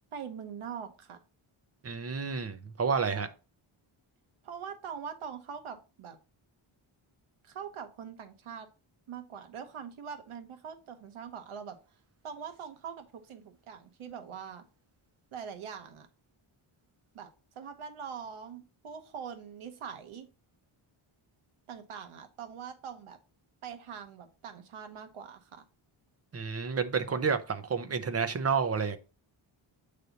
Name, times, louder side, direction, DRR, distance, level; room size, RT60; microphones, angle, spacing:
voice 1, 0.1-1.2 4.4-6.2 7.4-8.7 9.1-11.8 12.2-14.6 15.3-16.1 17.1-17.3 17.5-20.3 21.7-23.2 23.6-25.6, right 7 dB, 85° right, 1.1 m, -43 dB
voice 2, 1.8-3.3 26.3-29.0, right 5 dB, 30° right, 0.7 m, -30 dB
8.1 x 3.3 x 4.0 m
wide cardioid pair, 155°, 49 cm